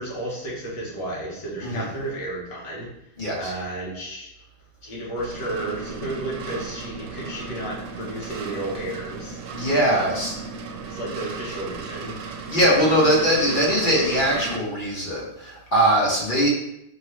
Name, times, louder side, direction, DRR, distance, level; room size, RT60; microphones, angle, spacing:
voice 1, 0.0-2.9 3.4-4.3 4.8-9.4 9.9-10.1 10.9-12.1, right 1 dB, 85° left, -5 dB, 2.0 m, -32 dB
voice 2, 3.2-3.5 9.5-10.3 12.5-16.5, equal, 30° left, -5 dB, 1.2 m, -21 dB
sound 1, 5.2-14.6, right 4 dB, 80° right, 1.2 m, -35 dB
4.6 x 3.0 x 3.1 m, 0.84 s
omnidirectional pair, 1.9 m